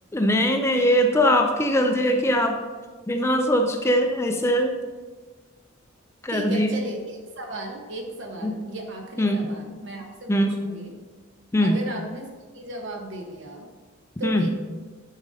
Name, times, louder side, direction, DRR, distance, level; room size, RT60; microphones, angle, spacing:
voice 1, 0.1-2.6 3.1-4.7 6.2-6.7 8.4-8.5 9.2-9.5 10.3-10.7 11.5-11.8 14.2-14.5, equal, 15° left, 4 dB, 0.3 m, -21 dB
voice 2, 6.3-10.9 11.6-12.3 12.5-13.7 14.2-14.5, right 2 dB, 65° right, 1 dB, 1.1 m, -35 dB
9.3 x 5.0 x 2.7 m, 1.4 s
head